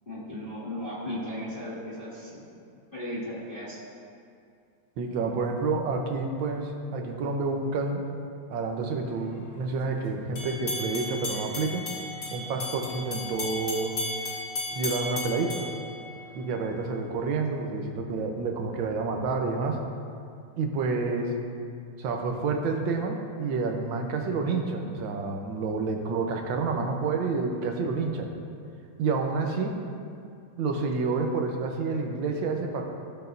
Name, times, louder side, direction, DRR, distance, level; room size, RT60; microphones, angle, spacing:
voice 1, 0.1-2.4 2.9-3.8, left 1 dB, 25° left, -10 dB, 2.2 m, -36 dB
voice 2, 5.0-8.0 8.5-11.9 12.3-13.9 14.7-15.6 16.3-19.8 20.6-21.3 22.0-28.3 29.0-29.7 30.6-32.8, right 4 dB, 80° right, 3 dB, 1.6 m, -29 dB
sound 1, 10.4-16.6, left 2 dB, 45° left, 1.3 m, -35 dB
15.5 x 6.4 x 2.6 m, 2.4 s
omnidirectional pair, 2.1 m